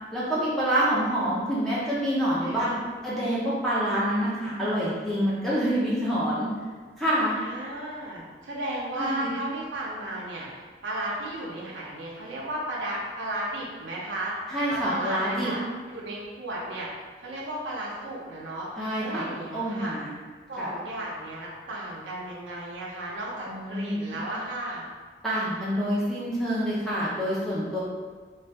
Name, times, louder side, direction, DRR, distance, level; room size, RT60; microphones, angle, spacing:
voice 1, 0.1-2.7 3.0-6.5 7.0-7.4 9.0-9.3 14.5-15.5 18.8-19.2 19.5-20.1 20.6-20.7 23.5-24.2 25.2-27.8, equal, ahead, -9 dB, 0.4 m, -27 dB
voice 2, 2.5-2.9 7.4-14.4 14.7-15.6 15.9-20.0 20.5-24.9, right 1 dB, 85° right, -5 dB, 0.5 m, -34 dB
2.6 x 2.2 x 3.3 m, 1.5 s
head